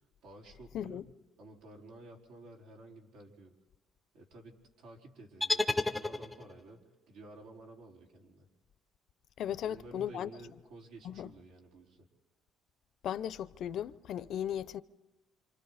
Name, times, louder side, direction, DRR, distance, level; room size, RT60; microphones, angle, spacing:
voice 1, 0.2-1.0 1.4-3.5 4.1-6.8 7.1-8.5 9.5-12.1, right 2 dB, 80° right, 4.6 m, -52 dB
sound 1, 5.4-6.7, left 2 dB, 5° left, 0.7 m, -32 dB
voice 2, 9.4-10.3 11.0-11.3 13.0-14.8, left 10 dB, 60° left, 0.7 m, -36 dB
28.0 x 27.5 x 4.2 m
cardioid pair, 120°, 0 cm